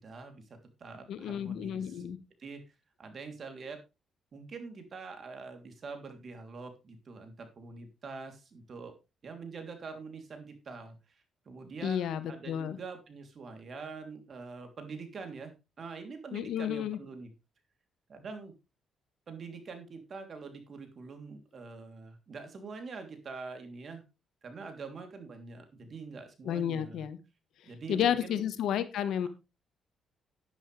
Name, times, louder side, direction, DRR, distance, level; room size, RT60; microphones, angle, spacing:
voice 1, 0.0-2.0 2.4-3.8 4.3-8.9 9.2-17.3 18.1-18.5 19.3-24.0 24.4-27.0 27.6-28.5, right 4 dB, 45° right, 6 dB, 3.2 m, -45 dB
voice 2, 1.1-2.2 11.8-12.8 16.3-17.0 26.4-27.2 27.9-29.3, left 9 dB, 75° left, 12 dB, 1.3 m, -31 dB
11.0 x 10.5 x 3.4 m, 0.27 s
cardioid pair, 90°, 0 cm